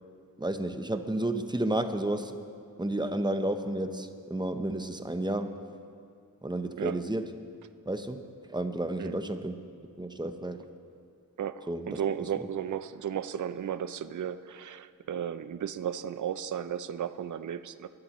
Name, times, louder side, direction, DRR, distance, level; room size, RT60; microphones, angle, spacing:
voice 1, 0.4-2.4 2.8-5.6 6.4-7.3 7.9-8.2 8.5-9.6 10.0-10.7 11.7-12.0, right 1 dB, 10° right, 8 dB, 0.7 m, -31 dB
voice 2, 11.4-17.9, right 9 dB, 55° right, 13 dB, 0.5 m, -34 dB
23.5 x 12.5 x 3.1 m, 2.3 s
wide cardioid pair, 90°, 36 cm